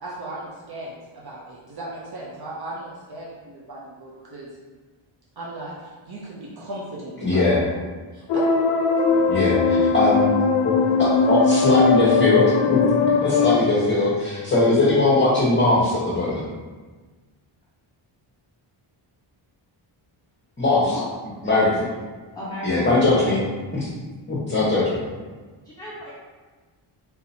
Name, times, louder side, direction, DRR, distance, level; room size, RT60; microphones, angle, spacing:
voice 1, 0.0-4.5 5.4-7.8 8.1-8.4 9.1-9.5, right 1 dB, 50° right, -5 dB, 0.8 m, -37 dB
voice 2, 7.2-7.6 9.3-10.3 10.6-12.8 13.2-16.4 20.6-20.9 21.4-21.8 22.6-23.4 23.7-23.9 24.3-25.0, left 2 dB, 25° left, -9 dB, 1.1 m, -20 dB
sound 1, 8.3-13.5, left 4 dB, 75° left, 0.6 m, -19 dB
voice 3, 22.3-23.3 25.6-26.1, left 1 dB, 10° left, -9 dB, 0.8 m, -34 dB
3.5 x 2.9 x 4.2 m, 1.3 s
wide cardioid pair, 120°, 50 cm